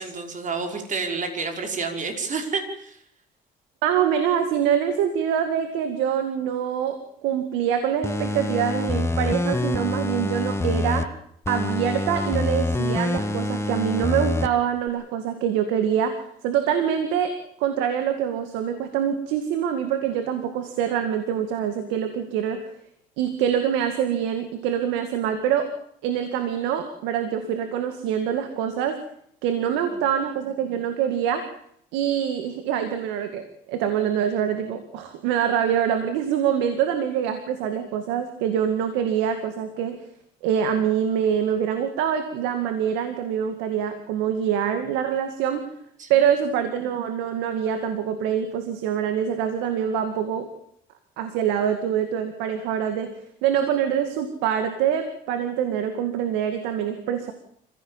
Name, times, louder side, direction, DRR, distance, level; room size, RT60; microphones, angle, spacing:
voice 1, 0.0-3.0 29.7-30.1 46.0-46.1, right 4 dB, 45° right, 4 dB, 5.4 m, -30 dB
voice 2, 3.8-11.1 11.5-22.6 23.2-25.7 26.0-29.0 29.4-31.5 31.9-40.0 40.4-45.7 46.1-50.5 51.2-53.1 53.4-57.3, right 9 dB, 90° right, 8 dB, 2.2 m, -25 dB
sound 1, 8.0-11.0 11.5-14.5 14.9-15.0, left 2 dB, 15° left, 2.3 m, -26 dB
26.5 x 16.0 x 7.3 m, 0.70 s
supercardioid pair, 75°, 18 cm